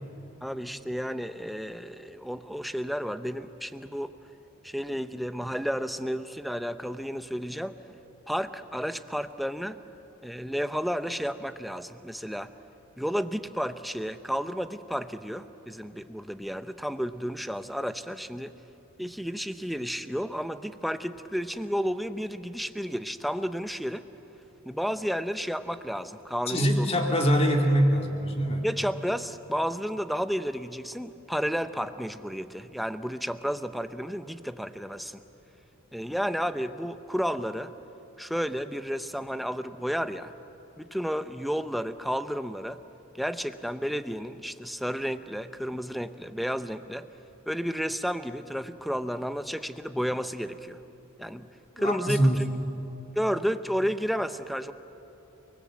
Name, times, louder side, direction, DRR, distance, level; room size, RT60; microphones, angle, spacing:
voice 1, 0.4-4.1 4.6-7.8 8.3-9.8 10.2-12.5 13.0-18.5 19.0-24.0 24.7-27.0 28.6-35.2 35.9-37.7 38.2-40.3 40.8-42.8 43.1-47.1 47.5-50.8 51.2-51.5 51.8-52.3 53.2-54.7, equal, ahead, 10 dB, 0.6 m, -32 dB
voice 2, 26.5-28.7 51.8-52.4, equal, 30° left, 2 dB, 2.4 m, -23 dB
30.0 x 20.5 x 7.7 m, 3.0 s
head